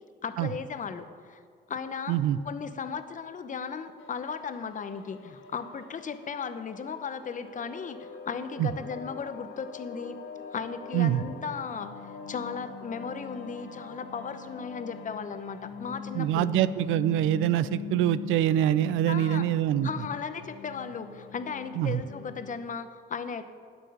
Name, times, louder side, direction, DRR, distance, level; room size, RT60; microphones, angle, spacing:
voice 1, 0.2-1.4 1.7-2.2 2.4-8.0 8.3-10.2 10.5-11.9 12.3-16.5 19.1-19.5 19.8-23.4, left 6 dB, 40° left, 10 dB, 0.8 m, -36 dB
voice 2, 2.1-2.4 8.6-8.7 10.9-11.2 16.1-19.9 21.8-22.0, right 12 dB, 90° right, 16 dB, 0.4 m, -25 dB
sound 1, 4.0-22.5, left 7 dB, 80° left, 1.1 m, -43 dB
9.0 x 7.7 x 6.7 m, 2.1 s
cardioid pair, 90°, 20 cm